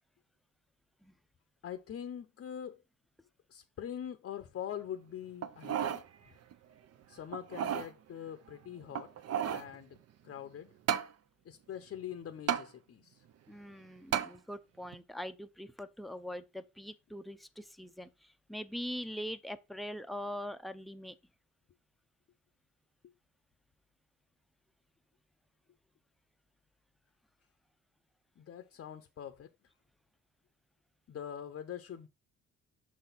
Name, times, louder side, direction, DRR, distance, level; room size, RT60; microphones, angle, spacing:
voice 1, 1.6-2.8 3.5-6.0 7.1-9.1 9.5-10.0 10.2-10.7 11.4-13.2 28.4-29.5 31.1-32.1, left 9 dB, 45° left, 0.6 m, -43 dB
sound 1, 5.4-6.0 6.5-6.6 7.3-7.9 8.9-9.7 10.9-11.1 12.5-12.7 14.1-14.3 14.9-15.0, right 9 dB, 55° right, 0.6 m, -32 dB
voice 2, 13.5-21.2, equal, ahead, 0.5 m, -42 dB
6.3 x 4.1 x 4.0 m
cardioid pair, 90°, 30 cm